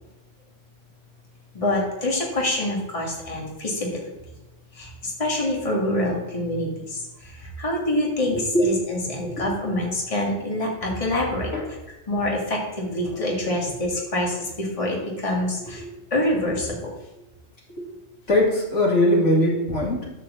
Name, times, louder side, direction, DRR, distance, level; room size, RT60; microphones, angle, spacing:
voice 1, 1.5-3.9 4.8-7.0 7.6-11.5 12.1-15.8 16.1-16.9, left 1 dB, 25° left, -2 dB, 2.1 m, -26 dB
voice 2, 8.3-8.7 9.0-9.4 11.5-11.6 13.4-13.5 17.8-17.9 18.3-20.1, left 1 dB, 70° left, -3 dB, 2.7 m, -21 dB
11.0 x 4.8 x 7.2 m, 1.0 s
omnidirectional pair, 1.3 m